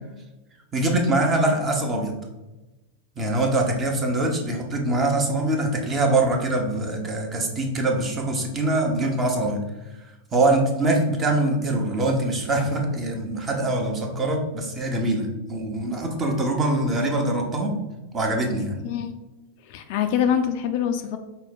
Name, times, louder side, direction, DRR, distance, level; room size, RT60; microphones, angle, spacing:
voice 1, 0.7-2.1 3.2-9.6 10.3-17.7 18.1-18.8, right 2 dB, 25° right, 2 dB, 0.9 m, -23 dB
voice 2, 18.8-19.1 19.6-21.2, left 8 dB, 45° left, 6 dB, 0.4 m, -24 dB
5.6 x 2.2 x 4.2 m, 1.1 s
figure-of-eight pair, 90°, 0 cm